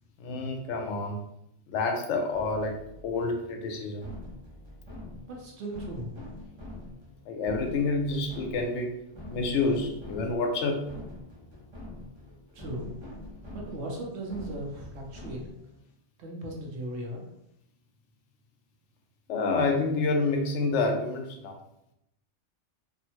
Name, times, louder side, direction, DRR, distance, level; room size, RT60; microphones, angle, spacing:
voice 1, 0.2-1.2 1.7-2.8 3.0-4.1 7.3-9.0 9.3-10.8 19.3-21.6, left 3 dB, 80° left, 3 dB, 0.9 m, -28 dB
sound 1, 2.3-15.8, left 1 dB, 30° right, 0.6 m, -45 dB
voice 2, 5.3-6.2 12.5-12.9 13.5-15.4 16.2-17.2, right 1 dB, 70° right, 0 dB, 1.0 m, -37 dB
3.4 x 2.1 x 2.8 m, 0.80 s
omnidirectional pair, 1.2 m